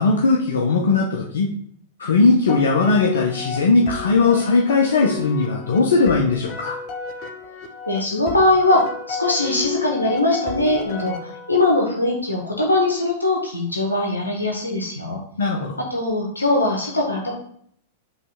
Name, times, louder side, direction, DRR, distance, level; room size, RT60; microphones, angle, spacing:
voice 1, 0.0-1.5 2.0-6.8 15.4-15.8, left 3 dB, 65° left, -1 dB, 0.9 m, -18 dB
sound 1, 2.5-11.8, left 5 dB, 40° left, 1.0 m, -33 dB
voice 2, 7.9-15.2 15.9-17.3, left 2 dB, 85° left, -1 dB, 1.2 m, -21 dB
5.6 x 3.3 x 5.7 m, 0.65 s
figure-of-eight pair, 95°, 0 cm